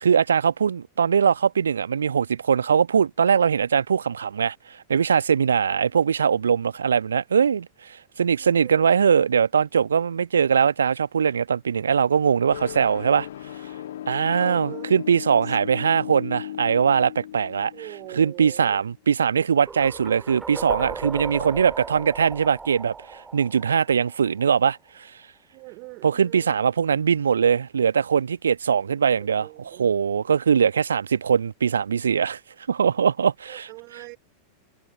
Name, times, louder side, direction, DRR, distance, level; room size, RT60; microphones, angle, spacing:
voice 1, 0.0-4.5 4.9-13.3 14.1-17.7 18.1-24.8 26.0-32.4 32.7-33.7, right 7 dB, 70° right, 1.2 m, -21 dB
voice 2, 8.4-8.9 14.3-14.9 17.7-18.8 25.5-26.6 29.0-29.9 33.5-34.2, right 29 dB, 45° right, 4.3 m, -42 dB
sound 1, 12.5-18.9, left 12 dB, 60° left, 1.4 m, -37 dB
sound 2, 19.6-24.6, right 4 dB, 15° right, 2.1 m, -36 dB
figure-of-eight pair, 90°, 0 cm